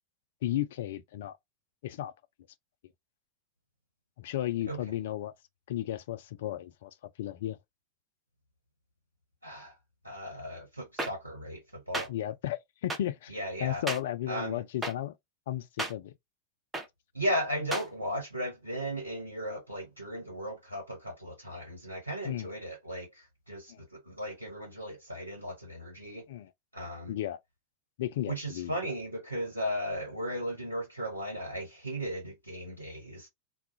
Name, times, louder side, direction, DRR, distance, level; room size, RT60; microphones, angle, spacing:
voice 1, 0.4-1.4 1.8-2.1 4.2-5.3 5.7-6.9 7.2-7.6 12.1-13.3 13.6-15.1 15.5-16.1 22.2-22.5 23.7-23.8 26.3-26.5 27.1-27.4 28.0-28.9, left 12 dB, 55° left, 0.3 m, -34 dB
voice 2, 9.4-9.7 10.0-12.1 13.3-13.8 14.3-14.6 17.1-26.2 26.7-27.1 28.3-33.3, equal, 85° right, 0.9 m, -36 dB
sound 1, 11.0-11.1 11.9-12.1 12.9-13.0 13.9-14.0 14.8-14.9 15.8-15.9 16.7-16.9 17.7-17.9, right 2 dB, 10° right, 0.6 m, -32 dB
2.3 x 2.0 x 2.6 m
figure-of-eight pair, 90°, 0 cm